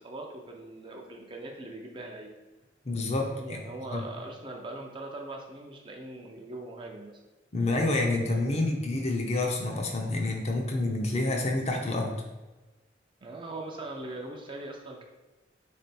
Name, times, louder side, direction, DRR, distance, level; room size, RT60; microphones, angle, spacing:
voice 1, 0.0-2.3 3.2-7.2 8.4-8.6 11.2-11.4 13.2-15.0, right 2 dB, 25° right, 1 dB, 0.5 m, -41 dB
voice 2, 2.8-3.6 3.9-4.0 7.5-12.2, left 2 dB, 35° left, 1 dB, 0.6 m, -28 dB
3.7 x 3.3 x 4.2 m, 1.1 s
head